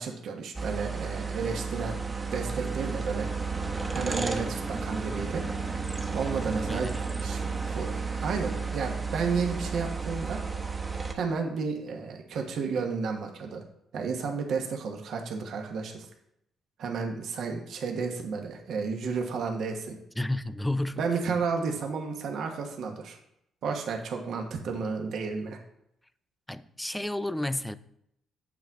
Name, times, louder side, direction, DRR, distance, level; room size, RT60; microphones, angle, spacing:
voice 1, 0.0-1.9 2.3-3.3 3.9-5.4 6.1-6.9 7.2-10.4 11.1-13.6 13.9-16.1 16.8-20.0 21.0-23.2 23.6-25.6, right 5 dB, 70° right, 1.2 m, -32 dB
sound 1, 0.5-11.1, right 4 dB, 25° right, 1.0 m, -32 dB
voice 2, 6.7-7.4 20.2-21.1 26.5-27.7, left 1 dB, 5° left, 0.4 m, -32 dB
8.5 x 6.0 x 3.6 m
cardioid pair, 90°, 0 cm